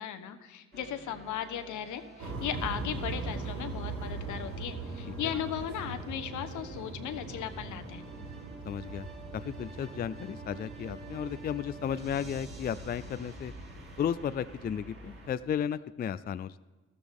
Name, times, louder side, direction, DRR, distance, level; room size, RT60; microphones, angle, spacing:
voice 1, 0.0-8.0, left 9 dB, 80° left, 9 dB, 1.2 m, -37 dB
sound 1, 0.7-15.3, right 3 dB, 35° right, 2.9 m, -50 dB
sound 2, 2.2-15.5, right 3 dB, 65° right, 3.6 m, -41 dB
voice 2, 8.7-9.1 9.3-13.5 14.0-16.6, left 8 dB, 30° left, 15 dB, 0.4 m, -34 dB
14.5 x 13.0 x 3.6 m, 1.3 s
cardioid pair, 90°, 30 cm